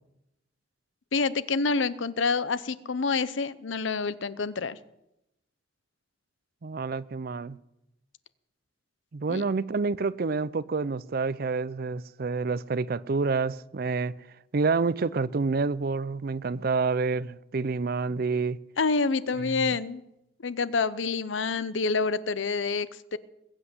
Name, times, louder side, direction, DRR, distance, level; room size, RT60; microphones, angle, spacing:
voice 1, 1.1-4.8 9.3-9.4 18.8-20.0 20.4-23.2, left 4 dB, 85° left, 0.7 m, -27 dB
voice 2, 6.6-7.6 9.1-14.1 14.5-18.6 19.4-19.7, right 4 dB, 50° right, 0.5 m, -28 dB
21.0 x 8.2 x 7.9 m
head